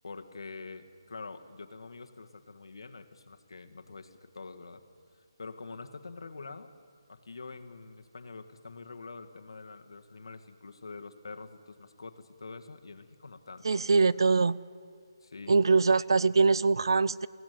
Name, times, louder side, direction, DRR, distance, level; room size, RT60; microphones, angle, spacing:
voice 1, 0.0-4.8 5.1-6.7 7.1-14.1 15.2-15.5, left 4 dB, 70° left, 7 dB, 1.8 m, -46 dB
voice 2, 13.6-14.6 15.5-17.3, right 4 dB, 70° right, 20 dB, 0.5 m, -23 dB
22.5 x 16.0 x 9.4 m, 2.3 s
hypercardioid pair, 175°, 3 cm